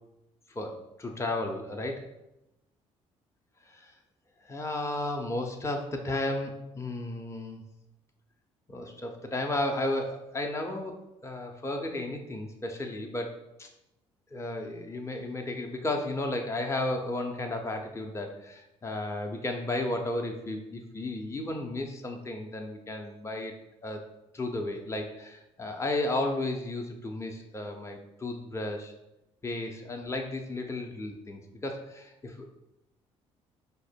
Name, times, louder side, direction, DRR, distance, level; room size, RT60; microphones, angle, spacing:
voice 1, 0.5-2.0 3.7-3.9 4.4-7.6 8.7-13.3 13.6-13.7 14.3-23.5 23.8-24.0 24.3-28.9 29.4-32.5, left 2 dB, 15° left, 3 dB, 0.6 m, -33 dB
4.7 x 2.2 x 4.4 m, 0.91 s
hypercardioid pair, 50°, 16 cm